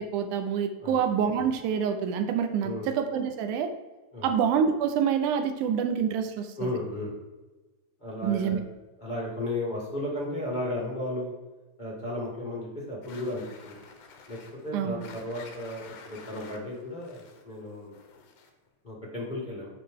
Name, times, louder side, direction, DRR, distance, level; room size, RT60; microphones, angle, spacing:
voice 1, 0.0-3.7 4.2-6.7 8.2-8.6 14.7-15.0, right 7 dB, 80° right, 7 dB, 2.1 m, -27 dB
voice 2, 6.6-7.1 8.0-8.6 9.0-11.3 11.8-13.8 14.3-17.9 18.8-19.7, left 1 dB, 40° left, -6 dB, 0.6 m, -34 dB
sound 1, 13.0-18.7, left 5 dB, 80° left, 2.5 m, -50 dB
8.3 x 4.8 x 3.6 m, 1.2 s
omnidirectional pair, 3.6 m